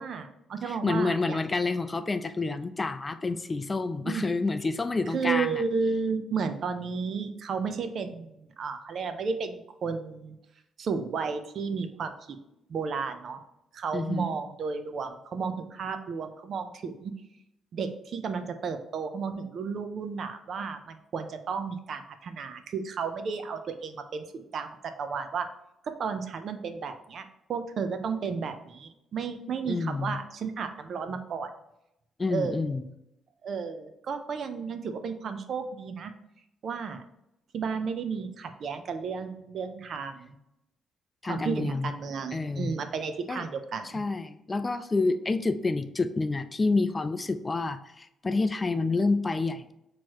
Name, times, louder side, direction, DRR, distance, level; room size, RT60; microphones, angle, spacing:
voice 1, 0.0-1.4 4.0-4.2 5.1-10.4 10.8-12.4 12.7-13.4 13.7-17.1 17.7-25.5 25.8-31.5 32.3-32.6 33.4-36.1 36.6-37.0 37.5-40.4 41.2-44.0, right 5 dB, 60° right, 8 dB, 0.5 m, -33 dB
voice 2, 0.6-5.6 13.9-14.4 29.7-30.2 32.2-32.8 41.2-41.9 42.3-42.8 43.3-43.4 43.9-49.7, left 3 dB, 25° left, 10 dB, 0.3 m, -28 dB
4.5 x 3.0 x 2.9 m, 0.83 s
cardioid pair, 90°, 0 cm